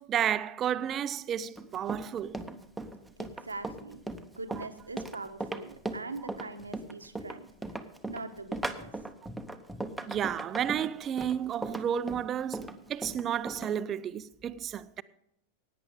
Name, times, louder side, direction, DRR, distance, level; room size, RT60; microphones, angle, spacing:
voice 1, 0.0-2.4 10.1-15.0, right 9 dB, 30° right, 0.5 m, -32 dB
Run, 1.6-13.7, right 2 dB, 5° right, 0.9 m, -38 dB
voice 2, 3.2-4.0 4.4-7.5 8.1-8.9, right 3 dB, 80° right, 1.1 m, -42 dB
17.0 x 9.4 x 3.6 m
figure-of-eight pair, 90°, 0 cm